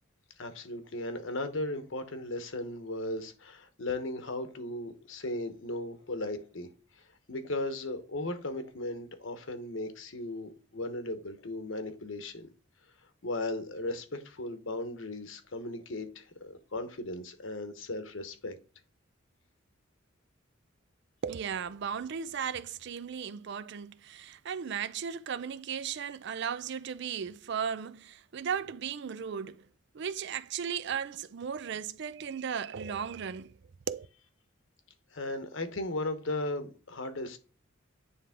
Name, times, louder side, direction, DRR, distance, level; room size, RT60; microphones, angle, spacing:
voice 1, 0.4-6.7 7.3-12.5 13.2-18.6 35.1-37.4, left 2 dB, 70° left, 1.1 m, -36 dB
voice 2, 21.2-29.7 29.9-33.5 33.9-34.1, right 7 dB, 60° right, 0.4 m, -36 dB
9.7 x 3.3 x 3.6 m
head